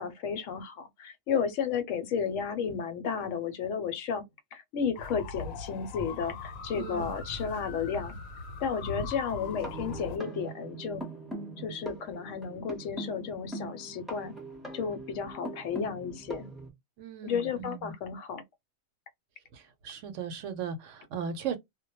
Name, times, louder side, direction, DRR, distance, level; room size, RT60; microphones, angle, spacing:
voice 1, 0.0-4.2 4.5-8.1 8.6-11.0 11.6-14.4 14.7-16.5 17.2-18.4, left 6 dB, 70° left, 0.9 m, -33 dB
sound 1, 5.0-10.2, left 3 dB, 90° left, 1.0 m, -40 dB
voice 2, 6.8-7.1 17.0-17.9 19.5-21.6, right 7 dB, 70° right, 0.9 m, -37 dB
sound 2, 9.4-16.7, right 2 dB, ahead, 0.6 m, -42 dB
2.2 x 2.1 x 2.9 m
omnidirectional pair, 1.4 m